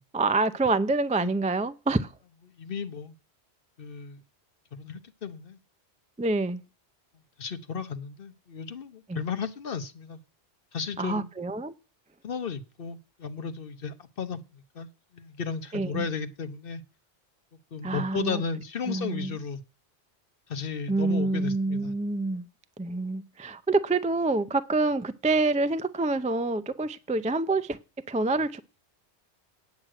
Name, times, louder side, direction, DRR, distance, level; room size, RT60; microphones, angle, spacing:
voice 1, 0.1-2.1 6.2-6.6 9.1-9.2 11.0-11.7 15.7-16.0 17.8-18.4 18.9-19.3 20.9-22.5 22.8-27.8 28.1-28.6, right 3 dB, 10° right, 0.3 m, -27 dB
voice 2, 2.6-3.1 3.8-4.2 4.7-5.6 7.4-10.2 10.7-11.3 12.2-16.8 17.7-19.6 20.5-21.9, left 6 dB, 55° left, 1.1 m, -34 dB
9.6 x 6.5 x 7.6 m
omnidirectional pair, 1.1 m